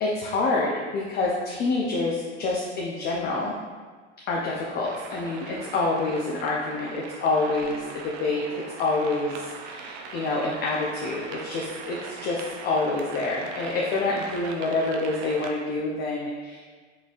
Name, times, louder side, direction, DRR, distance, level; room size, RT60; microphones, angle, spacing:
voice 1, 0.0-3.5 4.3-8.4 8.8-16.7, left 3 dB, 30° left, -3 dB, 0.4 m, -27 dB
sound 1, 4.8-15.5, right 5 dB, 45° right, 0.4 m, -40 dB
4.2 x 3.1 x 2.4 m, 1.5 s
hypercardioid pair, 115°, 36 cm